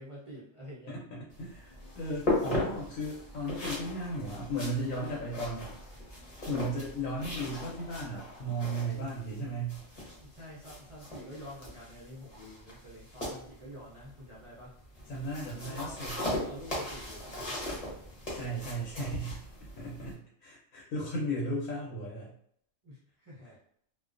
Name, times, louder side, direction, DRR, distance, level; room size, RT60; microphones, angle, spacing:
voice 1, 0.0-0.9 10.2-14.7 15.7-17.8 22.8-23.6, equal, 50° right, -8 dB, 0.4 m, -48 dB
voice 2, 0.9-5.7 6.5-9.8 15.1-16.2 18.3-19.4 19.8-22.3, right 1 dB, 75° left, -4 dB, 1.0 m, -35 dB
sound 1, 1.3-20.1, left 1 dB, 35° left, 0.8 m, -39 dB
sound 2, 1.7-8.1, equal, 55° left, 0.3 m, -52 dB
2.3 x 2.2 x 2.4 m, 0.65 s
omnidirectional pair, 1.5 m